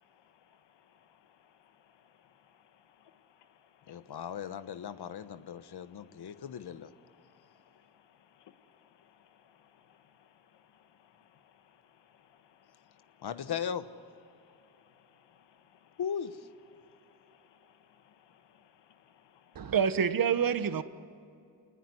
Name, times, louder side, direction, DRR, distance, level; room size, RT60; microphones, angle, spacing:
voice 1, 0.0-4.2 5.4-6.4 7.0-9.0 9.5-9.6 10.1-13.3 14.3-16.0 16.7-19.7, left 9 dB, 85° left, 1.4 m, -64 dB
voice 2, 3.9-6.9 13.2-13.9 16.0-16.4, left 8 dB, 65° left, 1.2 m, -37 dB
voice 3, 19.5-20.8, right 7 dB, 55° right, 1.2 m, -27 dB
27.5 x 20.0 x 9.7 m
cardioid pair, 75°, 42 cm